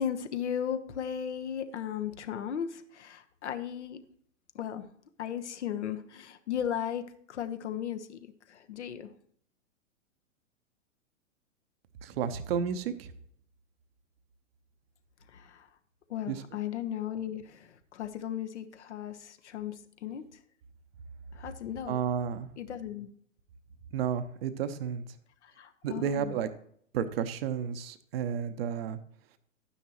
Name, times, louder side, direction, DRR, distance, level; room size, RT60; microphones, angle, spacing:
voice 1, 0.0-4.0 4.5-4.8 5.2-9.1 15.3-15.7 16.1-20.2 21.3-22.0 22.6-23.1 25.4-26.4, left 9 dB, 60° left, 8 dB, 1.2 m, -36 dB
voice 2, 12.0-13.1 16.3-16.4 21.9-22.5 23.9-25.0 25.8-26.5 26.9-29.0, right 8 dB, 50° right, 11 dB, 0.9 m, -32 dB
12.0 x 9.7 x 3.0 m, 0.63 s
figure-of-eight pair, 110°, 39 cm